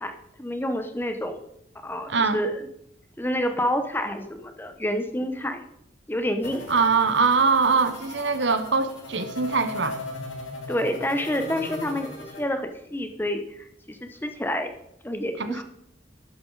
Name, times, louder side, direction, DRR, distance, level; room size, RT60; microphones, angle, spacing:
voice 1, 0.0-1.4 1.8-2.5 3.2-5.6 6.1-6.6 10.7-12.1 12.4-14.7 15.0-15.6, equal, 10° left, 7 dB, 0.8 m, -28 dB
voice 2, 2.1-2.4 6.7-10.0 15.4-15.6, right 4 dB, 70° right, 10 dB, 0.9 m, -22 dB
sound 1, 6.4-12.4, left 2 dB, 85° left, 2.4 m, -38 dB
11.5 x 8.9 x 4.0 m, 0.77 s
head